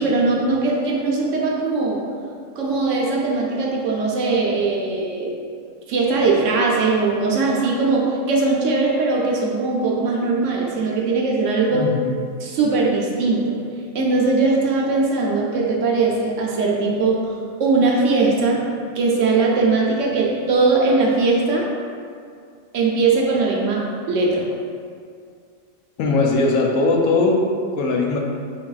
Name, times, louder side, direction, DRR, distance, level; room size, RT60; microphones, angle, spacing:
voice 1, 0.0-2.0 2.6-5.3 5.9-11.9 12.4-13.6 13.9-18.7 18.9-21.7 22.7-24.5, right 3 dB, 70° right, -2 dB, 0.9 m, -20 dB
voice 2, 11.7-12.2 26.0-27.4 27.7-28.2, left 3 dB, 85° left, 0 dB, 1.1 m, -19 dB
5.2 x 3.4 x 2.3 m, 2.3 s
omnidirectional pair, 1.4 m